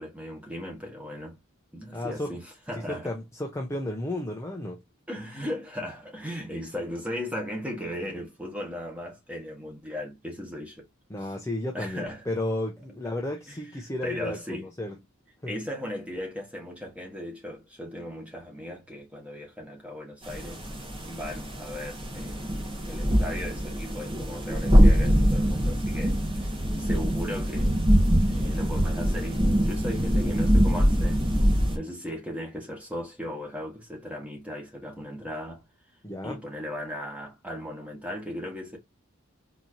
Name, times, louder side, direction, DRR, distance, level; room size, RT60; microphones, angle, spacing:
voice 1, 0.0-1.4 1.7-3.1 5.1-10.9 11.7-12.2 13.5-13.6 14.0-14.7 15.5-20.6 21.1-26.5 26.8-27.8 28.3-31.2 31.7-35.6 36.2-38.8, equal, 5° right, 1.3 m, -37 dB
voice 2, 1.9-2.3 2.9-4.8 11.1-15.0 15.4-15.5 36.0-36.4, left 1 dB, 15° left, 0.6 m, -33 dB
sound 1, 20.2-31.8, equal, 25° right, 1.2 m, -23 dB
4.2 x 2.9 x 2.5 m
head